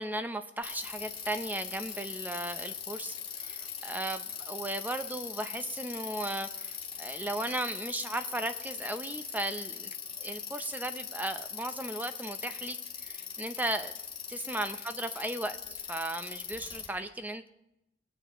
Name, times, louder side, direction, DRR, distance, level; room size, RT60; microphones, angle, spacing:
voice 1, 0.0-10.0 10.2-13.9 14.3-17.5, right 1 dB, 10° right, 8 dB, 0.6 m, -36 dB
Bicycle, 0.6-16.9, left 7 dB, 25° left, 1.6 m, -41 dB
19.0 x 9.0 x 3.0 m, 0.86 s
head